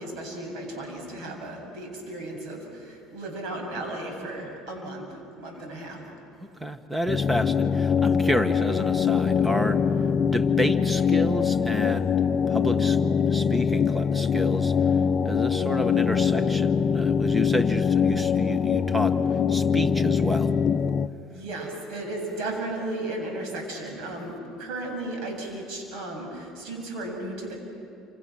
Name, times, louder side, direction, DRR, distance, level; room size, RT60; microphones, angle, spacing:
voice 1, 0.0-5.1 5.4-6.0 21.3-27.6, right 2 dB, 70° right, 2 dB, 7.8 m, -35 dB
voice 2, 6.4-9.8 10.3-12.1 12.5-13.0 13.3-14.7 15.2-19.2 19.5-20.5, equal, 10° right, 9 dB, 1.5 m, -30 dB
sound 1, 7.1-21.1, left 7 dB, 40° left, 0.7 m, -23 dB
29.0 x 27.5 x 6.2 m, 2.6 s
supercardioid pair, 100°, 0 cm